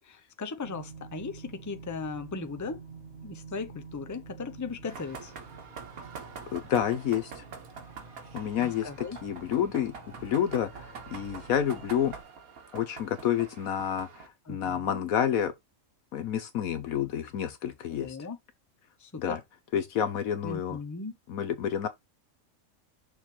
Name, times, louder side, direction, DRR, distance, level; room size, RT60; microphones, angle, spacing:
voice 1, 0.0-2.8 3.2-5.3 8.6-9.2 14.5-15.0 17.9-18.4 19.0-19.4 20.4-21.2, left 4 dB, 20° left, 0.6 m, -38 dB
sound 1, 0.6-12.2, right 5 dB, 50° right, 3.2 m, -49 dB
sound 2, 4.9-14.3, right 5 dB, 80° right, 1.8 m, -45 dB
voice 2, 6.5-7.4 8.3-9.9 10.2-12.1 12.7-15.5 16.1-18.2 19.2-19.4 19.7-20.8 21.3-21.9, left 9 dB, 75° left, 1.2 m, -29 dB
6.4 x 3.4 x 4.5 m
omnidirectional pair, 1.5 m